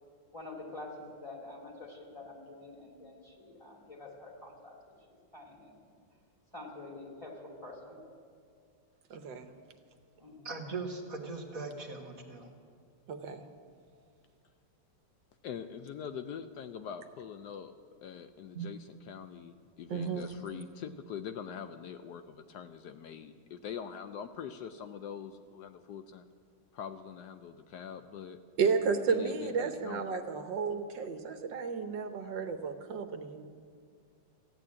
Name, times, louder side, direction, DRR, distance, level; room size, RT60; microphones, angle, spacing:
voice 1, 0.3-4.7 5.3-5.7 6.5-8.0 10.2-10.5, left 2 dB, 15° left, -1 dB, 2.7 m, -47 dB
voice 2, 9.1-9.5 13.1-13.5 19.9-20.4 28.6-33.5, right 5 dB, 75° right, 7 dB, 1.5 m, -32 dB
voice 3, 10.5-12.5 18.5-18.7, right 4 dB, 50° right, 2 dB, 1.8 m, -39 dB
voice 4, 15.4-17.7 18.0-26.2 26.7-28.4 29.1-30.0, left 8 dB, 75° left, 9 dB, 1.1 m, -43 dB
15.0 x 9.0 x 8.5 m, 2.3 s
omnidirectional pair, 2.0 m